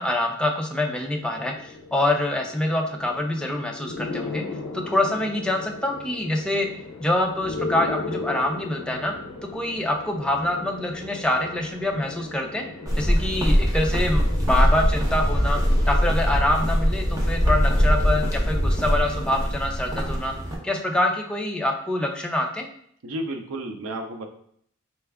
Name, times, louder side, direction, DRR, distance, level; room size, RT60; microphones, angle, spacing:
voice 1, 0.0-4.4 4.7-6.7 7.0-9.1 9.4-12.7 13.0-15.6 15.9-20.3 20.6-22.7, left 1 dB, 5° left, 1 dB, 0.4 m, -25 dB
sound 1, 0.9-19.4, left 3 dB, 70° left, 0.5 m, -37 dB
sound 2, 12.9-20.6, equal, 15° right, 0.7 m, -22 dB
voice 2, 23.0-24.3, right 1 dB, 80° right, 5 dB, 0.5 m, -32 dB
4.3 x 2.3 x 3.4 m, 0.66 s
head